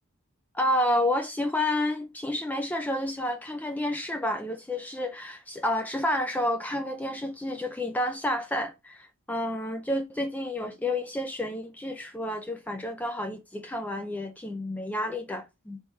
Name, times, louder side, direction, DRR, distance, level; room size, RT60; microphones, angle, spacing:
voice 1, 0.5-15.8, left 1 dB, 5° left, 0.3 m, -30 dB
3.5 x 3.2 x 4.0 m
head